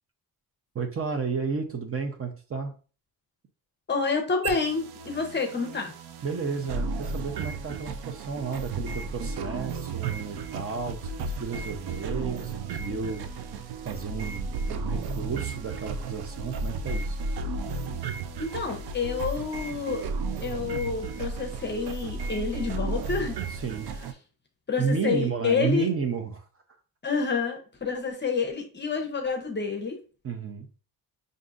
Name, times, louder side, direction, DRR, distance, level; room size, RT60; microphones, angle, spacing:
voice 1, 0.7-2.8 6.2-13.3 13.8-17.2 23.5-23.9 24.8-26.5 30.2-30.7, right 5 dB, 35° right, 5 dB, 0.6 m, -32 dB
voice 2, 3.9-5.9 18.4-20.1 20.4-23.4 24.7-25.9 27.0-30.0, left 5 dB, 30° left, 4 dB, 0.7 m, -28 dB
sound 1, 4.4-24.1, right 3 dB, 85° right, 0.5 m, -34 dB
5.2 x 2.6 x 2.4 m, 0.36 s
wide cardioid pair, 150°, 38 cm